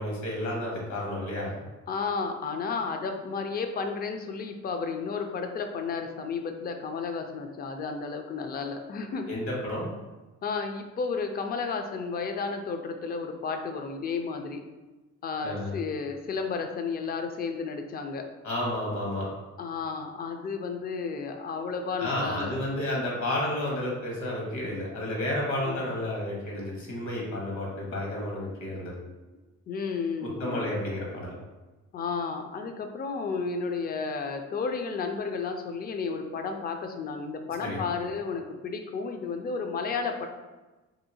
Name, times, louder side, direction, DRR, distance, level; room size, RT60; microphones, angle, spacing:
voice 1, 0.0-1.6 9.3-9.9 15.4-15.7 18.4-19.3 22.0-29.0 30.2-31.3 37.6-37.8, left 1 dB, 70° left, -3 dB, 1.2 m, -31 dB
voice 2, 1.9-9.3 10.4-14.6 15.2-18.3 19.6-22.5 25.6-25.8 29.7-30.8 31.9-40.3, left 5 dB, 30° left, 5 dB, 0.4 m, -32 dB
2.8 x 2.7 x 2.6 m, 1.2 s
cardioid pair, 90°, 30 cm